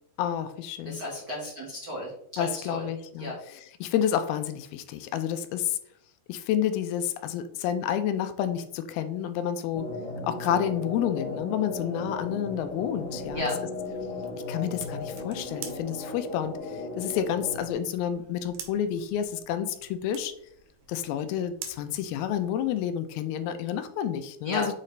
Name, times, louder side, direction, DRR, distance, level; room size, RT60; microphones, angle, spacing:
voice 1, 0.2-1.0 2.4-5.8 6.3-9.9 10.2-13.4 14.5-20.3 20.9-24.7, left 9 dB, 85° left, 10 dB, 2.4 m, -29 dB
voice 2, 0.8-2.9 3.2-3.4 13.3-13.6 24.4-24.7, left 1 dB, 70° right, -4 dB, 1.0 m, -34 dB
sound 1, 9.7-17.7, left 3 dB, 50° left, 2.8 m, -36 dB
sound 2, 12.5-22.9, right 8 dB, 90° right, 2.9 m, -48 dB
7.4 x 4.0 x 3.2 m, 0.69 s
omnidirectional pair, 4.4 m